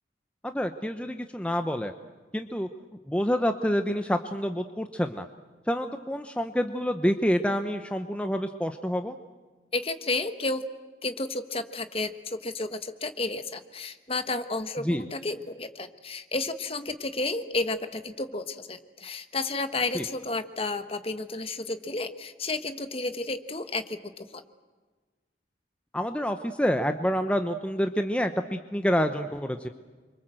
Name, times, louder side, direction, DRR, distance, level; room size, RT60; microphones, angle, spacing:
voice 1, 0.4-1.9 2.3-2.7 3.1-5.3 5.7-9.2 14.8-15.0 19.9-20.0 25.9-29.7, equal, 5° left, 7 dB, 0.9 m, -27 dB
voice 2, 9.7-10.7 11.0-24.4, left 3 dB, 30° left, 10 dB, 1.3 m, -32 dB
28.0 x 25.5 x 7.8 m, 1.3 s
head